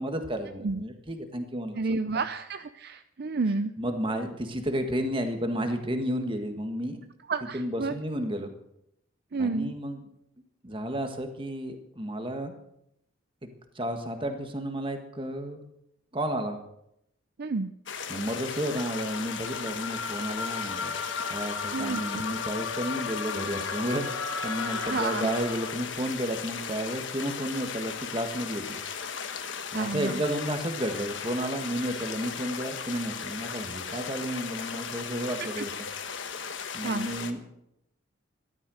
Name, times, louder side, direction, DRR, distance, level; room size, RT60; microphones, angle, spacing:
voice 1, 0.0-1.8 3.8-7.0 7.5-8.5 9.4-10.0 10.6-12.6 13.8-15.6 16.1-16.6 18.1-20.9 21.3-28.8 29.7-35.7 36.7-37.4, equal, 25° right, 6 dB, 1.7 m, -32 dB
voice 2, 1.7-3.7 7.3-7.9 9.3-9.7 17.4-17.7 21.7-22.2 24.9-25.3 29.7-30.2 35.4-35.6 36.8-37.2, right 4 dB, 50° right, 10 dB, 0.5 m, -30 dB
sound 1, 17.9-37.3, left 6 dB, 60° left, 1.3 m, -37 dB
sound 2, 18.8-26.0, left 5 dB, 85° left, 1.4 m, -35 dB
14.0 x 12.0 x 6.4 m, 0.79 s
head